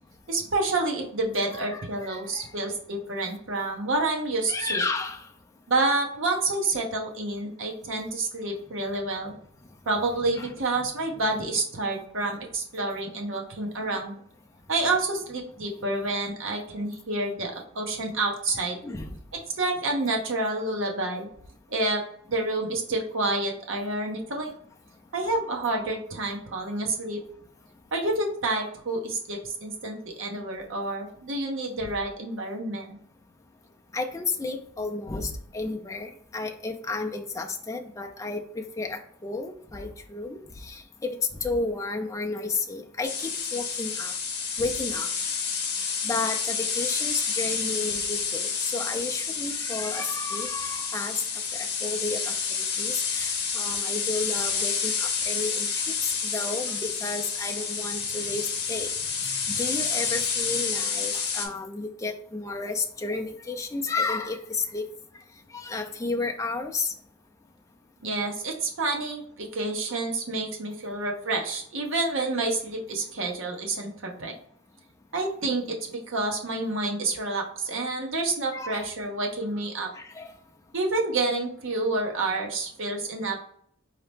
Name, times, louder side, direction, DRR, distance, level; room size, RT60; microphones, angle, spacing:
voice 1, 0.3-4.8 5.7-9.3 9.9-14.2 14.7-18.8 19.6-21.3 21.7-22.0 22.3-24.5 25.1-27.2 27.9-33.0 68.0-74.3 75.1-75.8 76.1-79.9 80.7-83.4, right 2 dB, 55° right, 1 dB, 0.9 m, -28 dB
voice 2, 1.5-2.5 4.5-5.3 9.3-9.4 10.2-11.2 18.8-19.2 31.8-31.9 33.9-44.1 44.6-45.1 45.8-51.2 51.5-52.3 52.8-64.9 65.5-66.9 78.5-78.9 79.9-80.3, left 3 dB, 15° left, 2 dB, 0.4 m, -32 dB
sound 1, 43.0-61.5, left 6 dB, 45° left, 0.8 m, -29 dB
4.0 x 2.9 x 3.3 m, 0.63 s
head